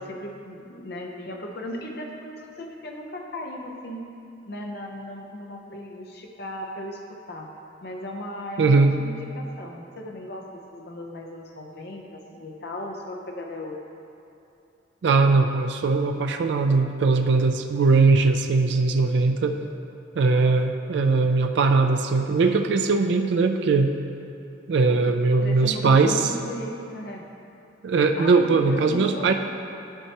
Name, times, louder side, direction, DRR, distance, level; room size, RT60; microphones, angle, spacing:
voice 1, 0.0-4.1 4.5-7.5 7.8-13.8 24.9-25.1 25.4-27.3 28.2-29.3, left 1 dB, 55° left, 1 dB, 0.7 m, -36 dB
voice 2, 8.6-8.9 15.0-19.6 20.2-23.9 24.7-26.2 27.8-29.3, right 4 dB, 65° right, 5 dB, 0.4 m, -20 dB
11.5 x 4.5 x 2.9 m, 2.7 s
head